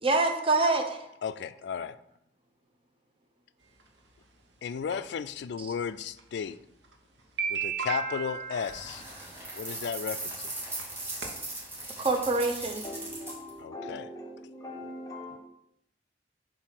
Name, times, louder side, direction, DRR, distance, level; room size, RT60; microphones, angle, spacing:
voice 1, 0.0-1.0 5.6-5.7 12.0-12.8, right 3 dB, 30° right, 4 dB, 0.8 m, -26 dB
voice 2, 1.2-2.0 4.6-6.6 7.5-9.0 9.5-10.5 13.6-14.1, left 6 dB, 70° left, 15 dB, 0.3 m, -34 dB
sound 1, 3.8-3.9 4.9-5.0 6.2-6.3 6.8-6.9 7.2-9.2 10.3-10.4 10.8-10.9 11.2-11.6 11.9-12.0 12.2-12.3 12.6-12.8, right 6 dB, 80° right, 1.0 m, -34 dB
voice 3, 8.5-9.0 12.8-15.4, left 1 dB, 20° left, 3 dB, 1.1 m, -42 dB
sound 2, 8.6-13.5, right 2 dB, 15° right, 1.9 m, -39 dB
7.5 x 2.7 x 5.8 m, 0.78 s
head